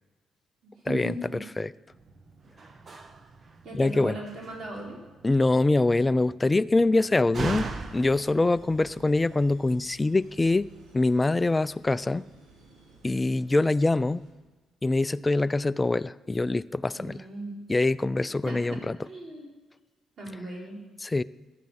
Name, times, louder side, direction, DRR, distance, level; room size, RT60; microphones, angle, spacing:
voice 1, 0.6-1.4 3.6-5.0 16.9-17.6 18.4-19.6 20.2-20.8, right 2 dB, 55° right, -1 dB, 4.1 m, -38 dB
Slam, 1.9-9.5, right 3 dB, 40° right, 1.2 m, -41 dB
voice 2, 3.7-4.2 5.2-10.7 10.9-12.2 13.0-14.2 14.8-17.2 17.7-19.0 21.0-21.2, left 2 dB, 20° left, 16 dB, 0.4 m, -24 dB
sound 1, 7.4-14.3, right 2 dB, 85° right, 3.6 m, -54 dB
14.5 x 10.5 x 5.6 m, 1.2 s
cardioid pair, 90°, 0 cm